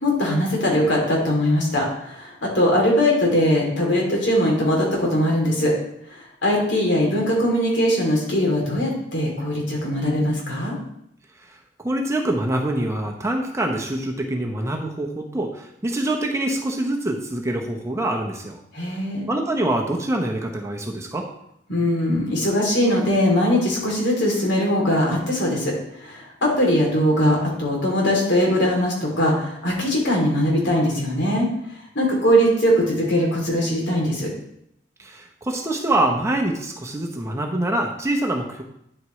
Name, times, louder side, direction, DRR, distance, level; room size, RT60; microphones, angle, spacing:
voice 1, 0.0-5.7 6.1-10.7 18.7-19.3 21.7-25.7 26.0-31.5 31.9-34.3, equal, 65° left, -2 dB, 3.0 m, -21 dB
voice 2, 11.5-18.6 19.3-21.3 35.0-38.6, right 1 dB, 15° right, 1 dB, 0.8 m, -25 dB
9.6 x 8.0 x 3.2 m, 0.76 s
head